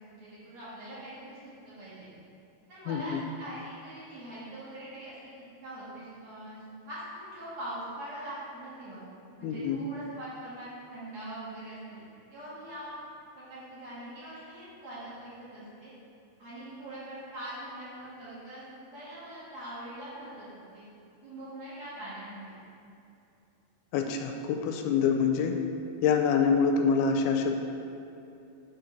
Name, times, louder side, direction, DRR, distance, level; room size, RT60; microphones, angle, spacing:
voice 1, 0.0-2.1 2.7-5.2 5.6-9.0 9.4-12.0 12.3-13.0 13.4-15.9 16.4-20.9 21.2-22.6, right 1 dB, 55° right, -10 dB, 2.2 m, -43 dB
voice 2, 2.9-3.2 9.4-9.8 23.9-25.6 26.0-27.6, left 6 dB, 85° left, 3 dB, 2.5 m, -26 dB
6.7 x 3.9 x 5.8 m, 2.6 s
omnidirectional pair, 4.5 m